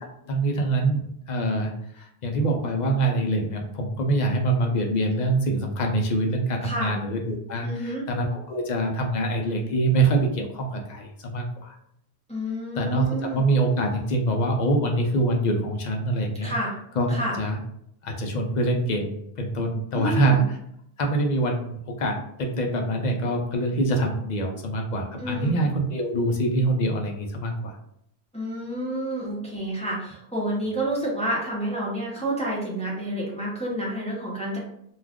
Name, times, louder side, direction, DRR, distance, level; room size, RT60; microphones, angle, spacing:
voice 1, 0.3-11.8 12.8-13.0 13.3-16.5 17.0-17.6 18.0-19.1 19.4-20.6 21.0-27.8, right 2 dB, 55° left, 2 dB, 0.6 m, -25 dB
voice 2, 6.6-6.9 7.6-8.0 12.3-13.4 16.4-16.7 17.1-17.3 19.9-20.4 25.2-25.6 28.3-34.6, right 1 dB, 5° left, -5 dB, 0.6 m, -29 dB
2.4 x 2.4 x 3.4 m, 0.73 s
omnidirectional pair, 1.1 m